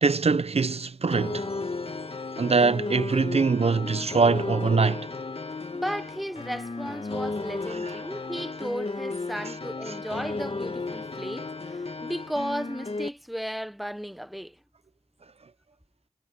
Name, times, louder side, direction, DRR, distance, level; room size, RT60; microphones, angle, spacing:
voice 1, 0.0-1.5 2.4-5.1 7.7-7.8, right 4 dB, 55° right, 0.7 m, -23 dB
sound 1, 1.1-13.1, left 3 dB, 50° left, 2.1 m, -34 dB
voice 2, 5.7-14.6, equal, ahead, 1.2 m, -35 dB
Laughter / Crowd, 6.9-9.7, left 1 dB, 20° left, 6.6 m, -57 dB
wide cardioid pair, 65°, 12 cm